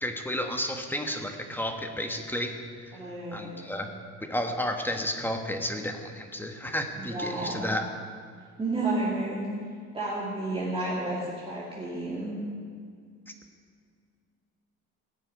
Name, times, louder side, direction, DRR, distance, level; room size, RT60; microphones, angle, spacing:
voice 1, 0.0-2.5 3.3-3.9 4.3-7.8, left 1 dB, 5° left, 4 dB, 1.3 m, -32 dB
voice 2, 2.9-4.0 6.9-7.8 8.6-9.5 9.9-12.4, right 2 dB, 20° right, -6 dB, 2.5 m, -32 dB
17.5 x 7.4 x 9.5 m, 2.1 s
cardioid pair, 150°, 30 cm